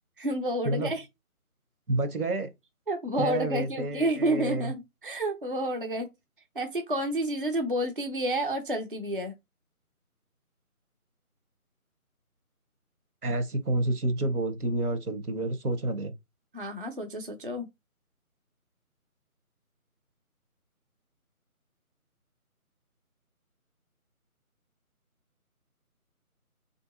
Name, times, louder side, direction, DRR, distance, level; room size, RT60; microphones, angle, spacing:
voice 1, 0.2-1.0 2.9-6.1 6.6-9.3 16.5-17.7, right 1 dB, 40° right, 0.4 m, -30 dB
voice 2, 1.9-2.5 3.2-4.7 13.2-16.1, right 2 dB, 80° right, 1.0 m, -29 dB
3.5 x 2.6 x 2.5 m
figure-of-eight pair, 160°, 44 cm